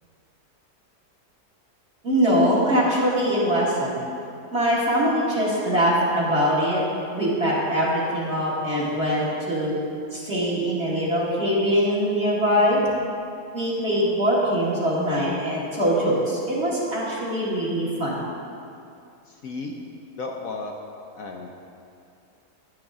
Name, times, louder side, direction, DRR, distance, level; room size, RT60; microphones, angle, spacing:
voice 1, 2.0-4.0 4.5-6.8 7.1-9.7 10.1-12.8 13.5-18.3, equal, 40° right, -7 dB, 2.4 m, -22 dB
voice 2, 19.3-19.7 20.2-20.7 21.1-21.5, left 3 dB, 60° left, 1 dB, 1.1 m, -33 dB
11.0 x 11.0 x 3.6 m, 2.5 s
omnidirectional pair, 1.8 m